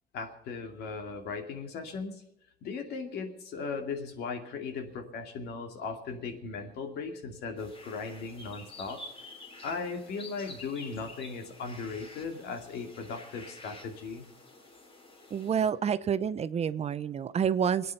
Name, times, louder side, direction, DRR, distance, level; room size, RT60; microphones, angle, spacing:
voice 1, 0.1-2.2 2.6-9.0 9.6-14.2, left 4 dB, 75° left, 5 dB, 2.6 m, -37 dB
sound 1, 7.6-15.7, left 2 dB, 35° left, 3.4 m, -49 dB
voice 2, 15.3-17.9, right 7 dB, 40° right, 14 dB, 0.7 m, -28 dB
25.5 x 9.5 x 5.6 m, 0.81 s
cardioid pair, 110°, 17 cm